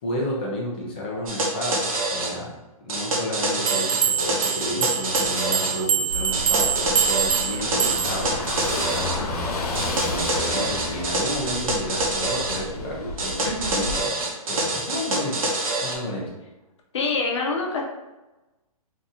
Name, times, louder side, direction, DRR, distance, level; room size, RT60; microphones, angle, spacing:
voice 1, 0.0-2.5 2.8-14.2 14.4-15.5 15.8-16.3, left 1 dB, 15° left, -4 dB, 0.4 m, -32 dB
sound 1, 1.3-2.3 2.9-5.8 6.3-9.2 9.7-12.6 13.2-16.0, right 2 dB, 65° right, 0.9 m, -26 dB
sound 2, 3.7-8.3, right 8 dB, 90° right, 0.5 m, -25 dB
Car passing by / Engine, 6.1-14.0, left 2 dB, 85° left, 0.9 m, -32 dB
voice 2, 13.4-13.8 16.9-17.8, left 3 dB, 50° left, -1 dB, 0.8 m, -26 dB
3.8 x 2.7 x 2.4 m, 1.1 s
hypercardioid pair, 175°, 19 cm